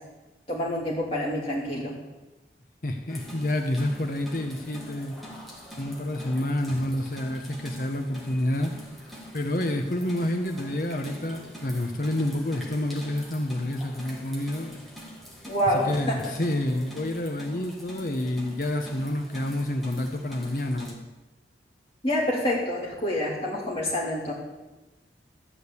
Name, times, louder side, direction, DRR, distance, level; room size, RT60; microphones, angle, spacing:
voice 1, 0.5-2.0 15.5-16.2 22.0-24.3, equal, 30° left, -5 dB, 3.0 m, -27 dB
voice 2, 2.8-5.2 5.7-8.7 9.3-14.8 15.6-21.1, left 1 dB, 50° left, 4 dB, 0.9 m, -28 dB
sound 1, 3.1-20.9, equal, ahead, 1.7 m, -44 dB
13.0 x 5.1 x 8.4 m, 1.1 s
head